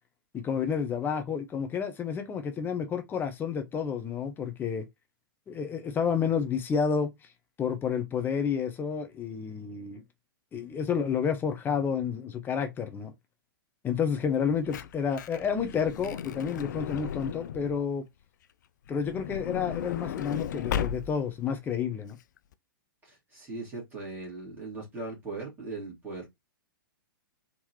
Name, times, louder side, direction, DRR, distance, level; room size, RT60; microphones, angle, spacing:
voice 1, 0.3-4.8 5.5-7.1 7.6-10.0 10.5-13.1 13.8-18.1 18.9-22.2, left 7 dB, 15° left, 0.7 m, -30 dB
Truck / Door, 14.3-17.8 18.9-21.4 22.1-22.2 22.4-22.5, left 9 dB, 55° left, 0.4 m, -35 dB
voice 2, 23.0-26.3, right 3 dB, 15° right, 1.8 m, -39 dB
3.8 x 2.9 x 2.8 m
figure-of-eight pair, 110°, 12 cm